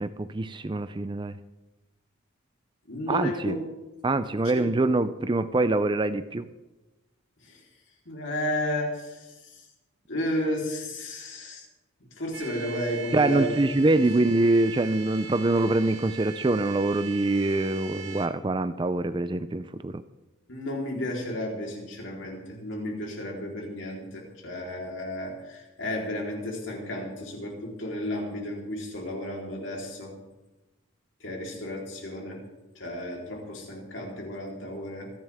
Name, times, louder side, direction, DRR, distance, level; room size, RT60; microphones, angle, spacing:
voice 1, 0.0-1.4 3.1-3.6 4.0-6.5 13.1-20.0, right 2 dB, 25° right, 13 dB, 0.4 m, -24 dB
voice 2, 2.9-3.6 4.5-4.7 7.4-7.6 8.1-9.7 10.1-11.7 12.1-13.6 14.0-14.1 20.5-30.2 31.2-32.4 32.7-35.1, left 1 dB, 70° left, -1 dB, 3.8 m, -33 dB
sound 1, 12.3-18.3, right 6 dB, 55° right, 1.9 m, -40 dB
26.5 x 10.5 x 3.6 m, 1.1 s
head